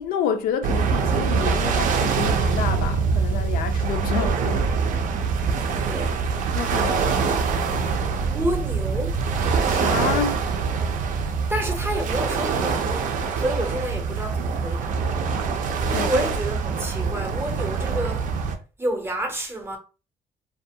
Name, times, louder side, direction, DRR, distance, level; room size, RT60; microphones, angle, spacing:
voice 1, 0.0-4.7 6.5-7.2 9.6-10.4 15.9-16.3, left 7 dB, 80° left, 0.4 m, -29 dB
sound 1, 0.6-18.6, right 5 dB, 65° right, 0.4 m, -24 dB
voice 2, 5.7-6.1 8.3-9.2 11.5-15.0 15.9-18.3 18.8-19.8, right 1 dB, 15° right, 0.6 m, -29 dB
2.3 x 2.3 x 2.6 m
cardioid pair, 120°, 15 cm